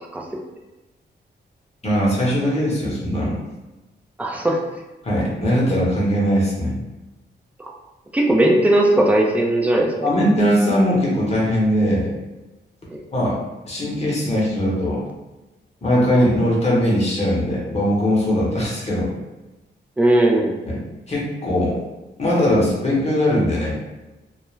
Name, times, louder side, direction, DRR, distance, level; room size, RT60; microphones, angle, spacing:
voice 1, 1.8-3.4 5.0-6.8 10.0-12.1 13.1-13.4 13.7-15.0 15.8-19.1 20.7-21.8 22.2-23.8, equal, 35° left, -5 dB, 0.9 m, -20 dB
voice 2, 4.2-4.6 7.6-7.7 8.1-10.3 12.9-13.0 20.0-20.6, right 1 dB, 10° right, -1 dB, 0.4 m, -18 dB
2.3 x 2.1 x 3.1 m, 1.1 s
cardioid pair, 90°, 19 cm